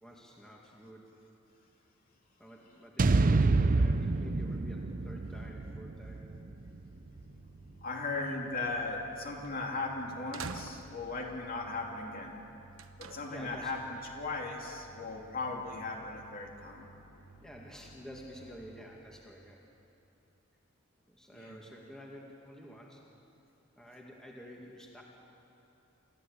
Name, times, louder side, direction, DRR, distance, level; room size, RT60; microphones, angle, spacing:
voice 1, 0.0-1.2 2.4-6.3 13.3-13.7 17.4-19.6 21.1-23.0 23.8-25.0, equal, 5° left, -2 dB, 2.1 m, -50 dB
sound 1, 3.0-7.2, right 3 dB, 40° right, 0.6 m, -28 dB
sound 2, 3.7-19.0, right 2 dB, 90° left, 3.3 m, -57 dB
voice 2, 7.8-12.4 13.0-16.9 21.3-21.6, left 3 dB, 45° left, 0 dB, 3.1 m, -37 dB
sound 3, 9.4-9.5 10.3-11.2 12.8-13.5, right 4 dB, 70° right, 1.0 m, -44 dB
28.5 x 14.5 x 8.6 m, 2.9 s
head